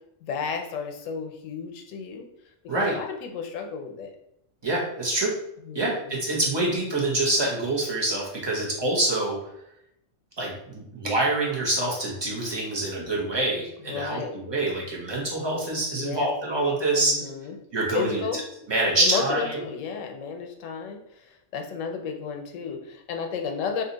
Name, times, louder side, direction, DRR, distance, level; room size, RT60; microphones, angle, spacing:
voice 1, 0.2-2.3 2.7-4.1 5.6-6.2 13.9-14.4 15.9-16.3 16.9-17.6 17.9-18.4 19.0-23.8, left 6 dB, 90° left, 4 dB, 1.0 m, -32 dB
voice 2, 4.6-5.3 5.7-9.4 10.4-17.2 17.7-18.4 18.7-19.6, right 2 dB, 25° right, -3 dB, 0.7 m, -26 dB
2.7 x 2.4 x 3.9 m, 0.79 s
omnidirectional pair, 1.3 m